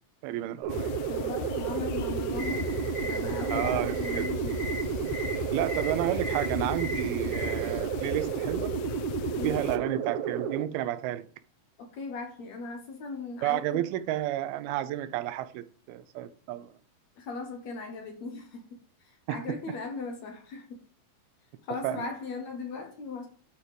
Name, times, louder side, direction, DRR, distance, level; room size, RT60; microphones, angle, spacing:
voice 1, 0.2-0.9 3.5-4.6 5.5-8.7 9.4-11.3 13.4-16.7 19.3-19.4 21.8-22.0, right 13 dB, 90° right, 2.6 m, -31 dB
sound 1, 0.6-10.6, right 8 dB, 70° right, 2.0 m, -32 dB
sound 2, 0.7-9.8, left 9 dB, 80° left, 2.5 m, -38 dB
voice 2, 1.1-4.6 9.3-9.6 11.8-13.8 17.2-20.8 21.6-23.3, left 4 dB, 60° left, 2.1 m, -38 dB
sound 3, 2.3-7.8, left 1 dB, 25° right, 2.3 m, -38 dB
11.0 x 4.6 x 5.1 m
omnidirectional pair, 4.3 m